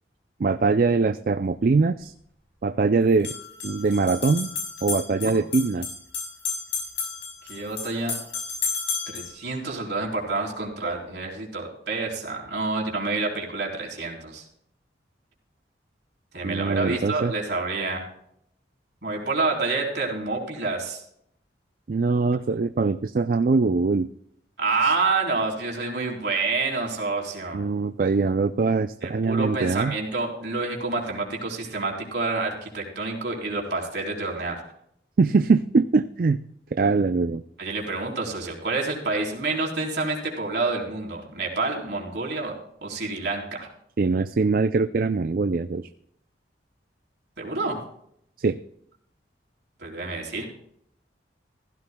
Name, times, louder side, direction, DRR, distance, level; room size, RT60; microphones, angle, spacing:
voice 1, 0.4-2.1 2.6-3.3 3.6-4.5 4.8-5.9 16.4-17.3 21.9-24.1 27.5-29.9 35.2-36.4 36.7-37.4 44.0-45.9 48.4-48.6, right 4 dB, 50° right, 11 dB, 0.4 m, -22 dB
sound 1, 1.4-1.5 3.1-9.3, left 5 dB, 80° left, 6.1 m, -32 dB
voice 2, 7.5-8.2 9.1-14.5 16.3-18.0 19.0-21.0 24.6-27.6 29.0-34.6 37.6-42.5 42.8-43.7 47.4-47.8 49.8-50.5, right 3 dB, 65° right, -1 dB, 3.8 m, -28 dB
15.5 x 15.5 x 2.3 m, 0.70 s
head